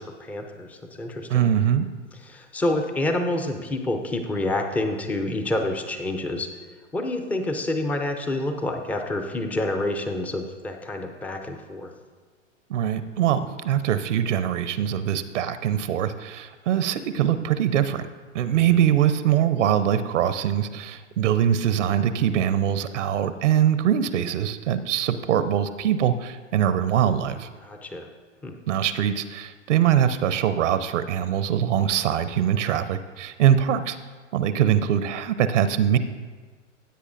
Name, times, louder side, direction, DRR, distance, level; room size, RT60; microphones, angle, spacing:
voice 1, 0.0-1.5 2.2-6.5 6.9-11.9 18.5-18.8 27.6-28.1 28.4-28.6, left 1 dB, 5° left, 5 dB, 0.3 m, -28 dB
voice 2, 1.3-1.9 12.7-18.1 18.3-27.5 28.7-34.0 34.3-36.0, right 10 dB, 70° right, 12 dB, 0.7 m, -23 dB
16.0 x 8.0 x 2.5 m, 1.4 s
hypercardioid pair, 110°, 38 cm